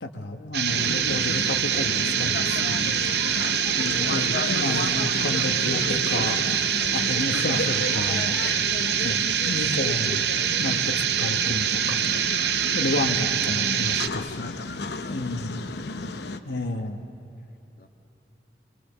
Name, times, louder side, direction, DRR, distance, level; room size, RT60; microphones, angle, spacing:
voice 1, 0.0-3.0 3.7-6.4 6.9-8.4 9.0-12.0 12.7-14.5 15.1-15.6 16.4-17.0, left 2 dB, 85° left, 4 dB, 1.3 m, -31 dB
sound 1, 0.5-14.1, right 9 dB, 65° right, 0.7 m, -25 dB
sound 2, 0.7-16.4, left 3 dB, 70° left, 0.8 m, -32 dB
voice 2, 4.0-4.5 6.8-7.0 15.0-15.3 15.9-16.7 17.8-17.9, left 2 dB, 50° left, 5 dB, 1.4 m, -47 dB
28.5 x 24.0 x 6.9 m, 2.8 s
head